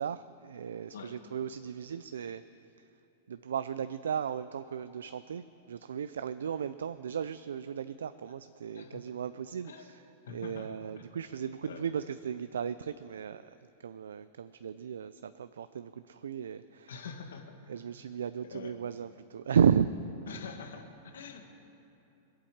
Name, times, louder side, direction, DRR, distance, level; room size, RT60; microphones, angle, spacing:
voice 1, 0.0-2.4 2.8-2.9 3.3-13.5 13.8-16.9 17.7-19.9, right 7 dB, 90° right, 13 dB, 0.4 m, -34 dB
voice 2, 10.3-10.7 11.7-11.8 16.9-17.6 18.5-18.8 20.3-21.5, left 6 dB, 85° left, 5 dB, 1.7 m, -45 dB
21.5 x 8.7 x 7.3 m, 2.9 s
hypercardioid pair, 120°, 0 cm